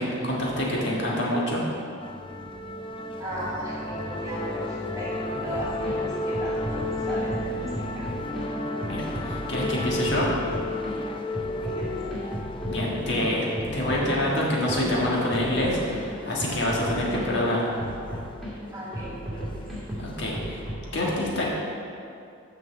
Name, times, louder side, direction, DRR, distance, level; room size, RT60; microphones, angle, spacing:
voice 1, 0.0-1.6 8.8-10.3 12.6-13.5 13.7-17.7 20.0-20.6 20.9-21.5, left 1 dB, 60° left, -4 dB, 1.6 m, -26 dB
sound 1, 2.0-20.7, left 2 dB, 25° left, 0.4 m, -34 dB
voice 2, 3.2-5.1 5.4-8.1 11.6-12.1 18.7-19.7, right 1 dB, 15° right, -7 dB, 2.1 m, -36 dB
sound 2, 5.5-5.9 6.3-8.5 8.8-10.9 11.3-16.0 16.4-17.3 17.8-18.5 18.9-20.8, equal, ahead, 2.0 m, -35 dB
7.3 x 5.4 x 7.0 m, 2.6 s
head